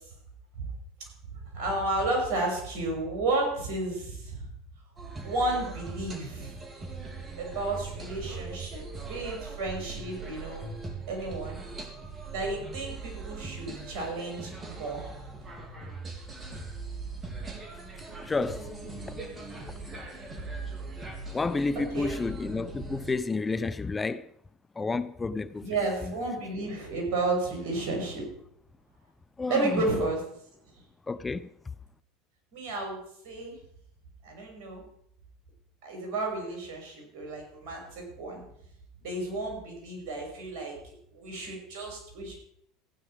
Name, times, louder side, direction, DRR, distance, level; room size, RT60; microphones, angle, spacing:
voice 1, 1.5-4.4 5.2-6.5 7.4-8.8 9.1-10.7 11.1-11.6 12.3-15.1 21.9-22.3 25.6-28.3 29.5-30.2 32.5-33.0 33.2-33.6 34.2-34.8 35.8-38.4 39.0-42.4, right 2 dB, 65° right, 6.3 m, -32 dB
sound 1, 5.0-23.1, right 3 dB, 25° right, 3.5 m, -40 dB
voice 2, 18.2-18.6 21.3-24.3 24.8-25.7 26.0-26.2 29.4-29.9 31.1-31.5, left 3 dB, 20° left, 0.5 m, -30 dB
15.0 x 9.7 x 5.0 m
hypercardioid pair, 80°, 0 cm